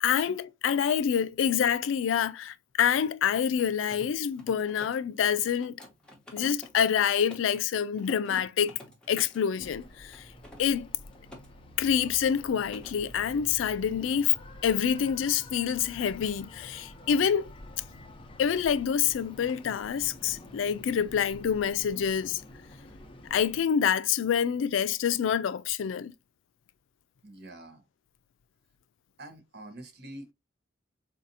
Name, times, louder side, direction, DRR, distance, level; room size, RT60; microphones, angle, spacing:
voice 1, 0.0-5.8 6.3-8.7 9.1-10.2 10.6-10.9 11.8-14.3 14.6-17.5 18.4-22.4 23.3-26.1, left 8 dB, 90° left, 0.3 m, -27 dB
Mechanisms, 3.5-7.6 8.0-9.5 10.1-11.5 11.8-12.1 12.4-13.0, left 1 dB, 5° left, 0.9 m, -50 dB
sound 1, 9.6-23.6, left 1 dB, 30° left, 0.6 m, -48 dB
voice 2, 27.2-27.8 29.2-30.3, right 1 dB, 55° right, 0.9 m, -46 dB
4.0 x 2.6 x 2.6 m
head